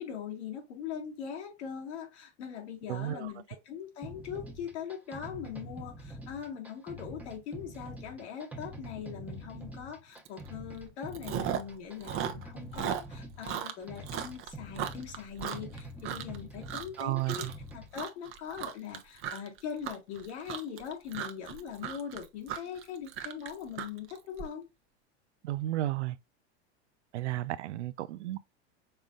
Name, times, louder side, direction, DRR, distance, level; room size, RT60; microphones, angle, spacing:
voice 1, 0.0-17.5 17.7-24.6, left 8 dB, 75° left, 1.8 m, -41 dB
voice 2, 2.9-3.3 17.0-17.5 25.4-26.2 27.1-28.4, right 15 dB, 85° right, 0.5 m, -33 dB
sound 1, 4.0-17.9, equal, 5° right, 0.9 m, -45 dB
Chewing mastication, 10.3-10.5 10.8-11.8 12.0-16.4 16.7-17.0 17.3-17.7 17.9-24.4, right 10 dB, 40° right, 0.8 m, -37 dB
5.5 x 3.6 x 2.4 m
hypercardioid pair, 110°, 34 cm